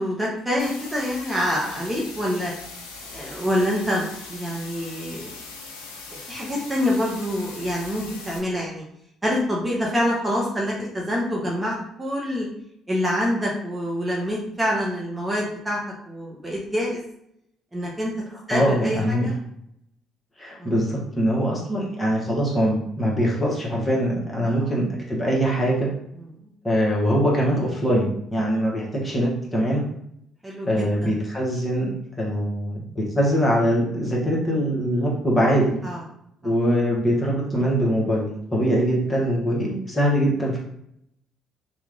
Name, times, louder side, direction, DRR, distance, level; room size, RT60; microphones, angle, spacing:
voice 1, 0.0-2.5 3.1-5.3 6.3-8.8 9.2-12.5 12.9-15.8 16.1-17.0 17.7-18.1 18.5-19.3 20.6-20.7 24.4-24.7 30.4-31.1 35.8-36.0, equal, 15° right, -4 dB, 0.8 m, -26 dB
sound 1, 0.6-8.4, left 3 dB, 80° left, 0.5 m, -40 dB
voice 2, 18.5-19.3 20.4-25.9 26.6-29.9 30.6-35.8 36.4-40.6, equal, 15° left, -4 dB, 1.3 m, -23 dB
2.9 x 2.4 x 3.5 m, 0.74 s
figure-of-eight pair, 50°, 0 cm